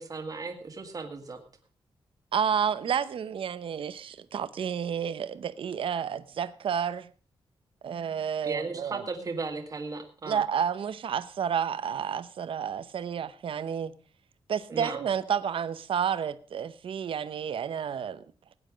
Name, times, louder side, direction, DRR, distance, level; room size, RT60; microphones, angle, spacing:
voice 1, 0.0-1.4 8.4-10.4 14.7-15.0, right 4 dB, 40° right, 1.8 m, -36 dB
voice 2, 2.3-7.1 7.8-9.0 10.3-13.9 14.5-18.2, right 8 dB, 70° right, 0.7 m, -30 dB
17.0 x 9.9 x 5.0 m
wide cardioid pair, 155°, 10 cm